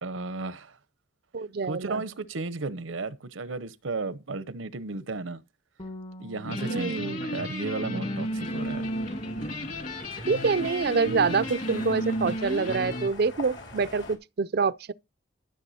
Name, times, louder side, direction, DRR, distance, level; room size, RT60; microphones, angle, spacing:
voice 1, 0.0-0.8 1.7-5.4 6.2-8.9, right 3 dB, 85° right, 0.9 m, -34 dB
voice 2, 1.3-2.0 6.7-7.2 10.3-14.9, right 4 dB, 55° right, 0.5 m, -26 dB
Bass guitar, 5.8-12.0, equal, 25° left, 0.8 m, -48 dB
sound 1, 6.4-13.1, equal, 45° left, 2.3 m, -32 dB
sound 2, 7.9-14.2, left 2 dB, 65° left, 2.8 m, -46 dB
13.0 x 6.7 x 4.2 m
head